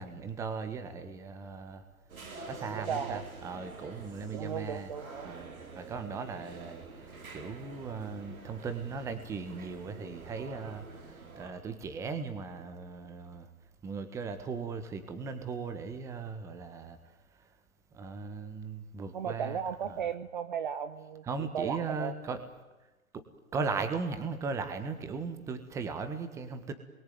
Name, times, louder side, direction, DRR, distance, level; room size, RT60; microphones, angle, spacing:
voice 1, 0.0-1.8 2.5-4.9 5.2-13.5 13.8-17.0 17.9-19.6 19.9-20.0 21.2-22.4 23.1-23.2 23.5-26.7, right 4 dB, 5° right, 9 dB, 1.4 m, -38 dB
sound 1, 2.1-11.5, right 4 dB, 75° right, 5.7 m, -47 dB
voice 2, 2.8-3.2 4.3-5.3 19.1-21.2 21.5-22.1, right 7 dB, 35° right, 12 dB, 0.9 m, -35 dB
28.0 x 22.5 x 9.5 m, 1.2 s
hypercardioid pair, 155°, 42 cm